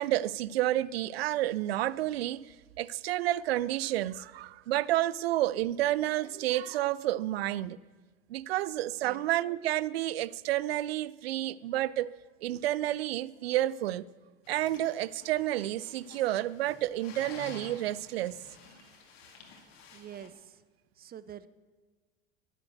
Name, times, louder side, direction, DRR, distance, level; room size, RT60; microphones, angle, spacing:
voice 1, 0.0-7.8 8.3-12.1 12.4-14.0 14.5-18.4, right 14 dB, 85° right, 0.5 m, -30 dB
sound 1, 14.4-20.3, left 5 dB, 75° left, 2.4 m, -51 dB
voice 2, 19.9-20.6 21.0-21.5, right 10 dB, 30° right, 0.7 m, -46 dB
11.0 x 9.9 x 7.8 m
hypercardioid pair, 80°, 29 cm